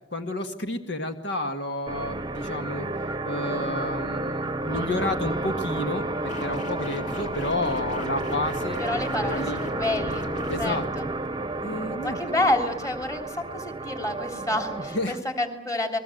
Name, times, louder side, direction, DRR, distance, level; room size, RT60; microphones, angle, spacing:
voice 1, 0.1-2.9 3.2-9.6 10.5-10.9 11.6-12.2 14.8-15.2, left 1 dB, 60° left, 6 dB, 1.8 m, -31 dB
sound 1, 1.9-15.2, right 2 dB, 25° right, 1.0 m, -31 dB
sound 2, 6.3-10.7, left 2 dB, 40° left, 3.1 m, -38 dB
voice 2, 8.8-10.2 10.6-11.1 12.0-16.0, left 1 dB, 15° left, 6 dB, 3.2 m, -28 dB
30.0 x 21.5 x 7.9 m, 0.86 s
head